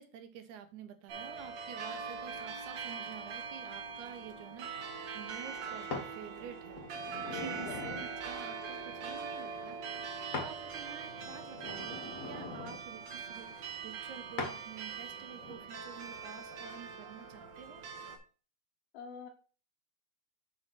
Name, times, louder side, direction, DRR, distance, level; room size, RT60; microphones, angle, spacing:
voice 1, 0.0-6.9 7.3-17.8, right 8 dB, 80° right, 8 dB, 2.3 m, -49 dB
sound 1, 1.1-18.2, right 5 dB, 65° right, 2.2 m, -42 dB
sound 2, 5.9-6.1 6.7-8.1 10.3-10.5 11.0-12.8 14.4-14.6 15.3-15.6, left 3 dB, 35° left, 1.4 m, -41 dB
voice 2, 7.3-7.7 10.2-10.3 18.9-19.3, left 6 dB, 80° left, 5 dB, 1.3 m, -45 dB
6.2 x 5.4 x 4.4 m, 0.37 s
omnidirectional pair, 3.4 m